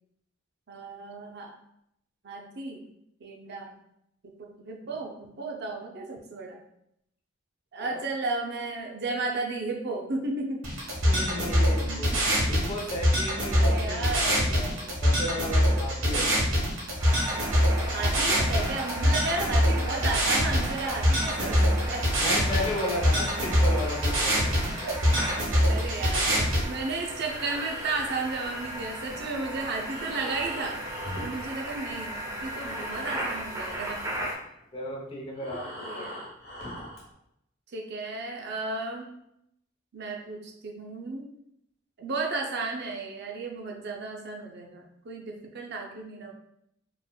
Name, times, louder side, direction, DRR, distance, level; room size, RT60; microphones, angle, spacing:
voice 1, 0.7-1.6 2.2-2.8 3.2-3.8 4.2-6.6 7.7-10.7 11.8-12.2 13.6-14.3 16.1-16.3 17.9-22.1 24.8-24.9 25.7-30.8 31.2-34.0 35.8-36.2 37.7-39.1 39.9-41.3 42.0-46.3, right 3 dB, 55° right, 1 dB, 0.6 m, -34 dB
sound 1, 10.6-26.6, equal, 75° right, 1.4 m, -24 dB
voice 2, 11.1-12.1 12.5-16.6 21.4-25.3 31.2-31.3 34.7-36.1, left 1 dB, 25° left, -1 dB, 0.8 m, -35 dB
sound 2, 17.0-34.3, right 1 dB, 20° right, 0.7 m, -37 dB
Breathing, 27.2-32.1 32.4-37.1, equal, 50° left, 1.3 m, -43 dB
4.8 x 3.3 x 2.3 m, 0.78 s
head